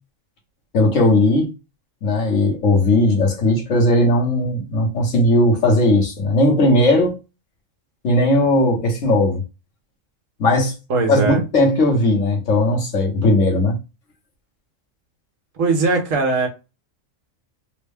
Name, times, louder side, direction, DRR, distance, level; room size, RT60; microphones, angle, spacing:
voice 1, 0.7-1.5 2.0-7.2 8.0-9.4 10.4-10.7 11.1-13.8, left 1 dB, 70° left, 1.4 m, -17 dB
voice 2, 10.9-11.4 15.6-16.5, right 3 dB, 75° right, 1.3 m, -19 dB
3.6 x 2.1 x 3.4 m
omnidirectional pair, 1.4 m